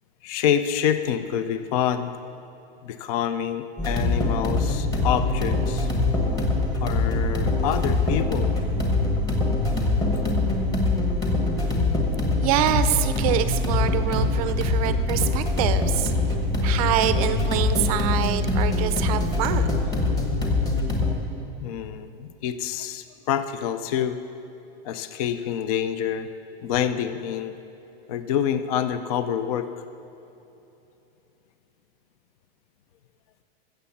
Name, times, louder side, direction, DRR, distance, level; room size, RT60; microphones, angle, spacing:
voice 1, 0.2-2.1 2.8-5.9 6.8-8.6 21.6-24.2 24.8-26.3 26.6-27.6 28.1-29.7, left 9 dB, 40° left, 11 dB, 0.5 m, -27 dB
sound 1, 3.8-21.1, left 2 dB, 10° left, 1.2 m, -23 dB
voice 2, 12.4-16.1 16.6-19.8, right 12 dB, 40° right, 11 dB, 0.6 m, -26 dB
15.5 x 7.0 x 7.2 m, 2.9 s
supercardioid pair, 165°, 30 cm